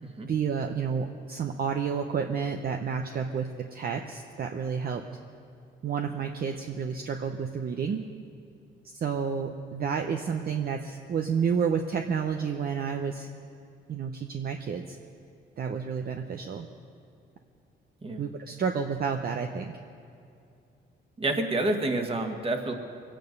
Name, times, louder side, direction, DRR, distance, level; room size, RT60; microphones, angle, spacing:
voice 1, 0.3-5.0 5.8-8.0 8.9-13.3 13.9-14.8 15.6-16.7 18.2-19.7, right 6 dB, 50° right, 4 dB, 0.8 m, -30 dB
voice 2, 21.2-22.7, right 2 dB, 30° right, 4 dB, 1.8 m, -28 dB
22.5 x 9.1 x 5.4 m, 2.5 s
cardioid pair, 90°, 20 cm